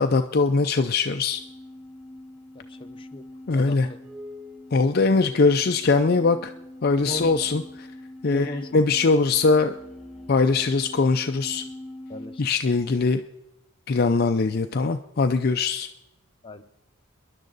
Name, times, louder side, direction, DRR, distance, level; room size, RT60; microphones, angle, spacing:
voice 1, 0.0-1.4 3.5-3.9 4.7-6.5 6.8-7.6 8.2-9.7 10.3-11.6 12.4-13.2 13.9-15.9, left 4 dB, 45° left, 0.5 m, -21 dB
sound 1, 1.3-12.5, left 1 dB, ahead, 1.3 m, -43 dB
voice 2, 2.5-3.3 3.5-3.8 7.1-7.3 8.3-8.7 12.1-12.4 16.4-16.6, left 1 dB, 25° left, 0.9 m, -36 dB
29.5 x 11.0 x 4.0 m
head